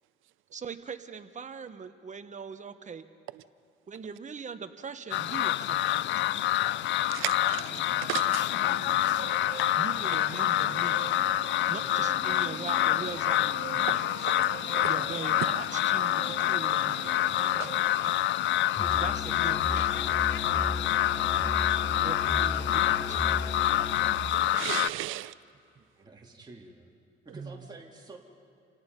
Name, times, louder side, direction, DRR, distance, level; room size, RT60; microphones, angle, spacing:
voice 1, 0.5-3.0 3.9-6.5 9.8-11.0 11.7-14.3 14.8-17.0 19.0-20.1 21.9-23.6 25.8-25.9 27.3-27.6, right 6 dB, 40° right, 9 dB, 1.2 m, -41 dB
sound 1, 5.1-24.9, left 14 dB, 65° left, 0.4 m, -27 dB
voice 2, 7.1-7.6 8.0-8.4 13.9-14.0 14.3-14.5 14.8-14.9 17.6-17.7 24.5-25.3, right 16 dB, 90° right, 17 dB, 0.5 m, -34 dB
sound 2, 7.4-18.2, right 7 dB, 60° right, 1.7 m, -43 dB
Musical instrument, 18.8-24.3, left 2 dB, 25° left, 1.1 m, -35 dB
voice 3, 26.0-26.9 27.2-28.2, right 2 dB, 20° right, 0 dB, 2.6 m, -48 dB
28.5 x 17.5 x 5.4 m, 2.6 s
cardioid pair, 90°, 20 cm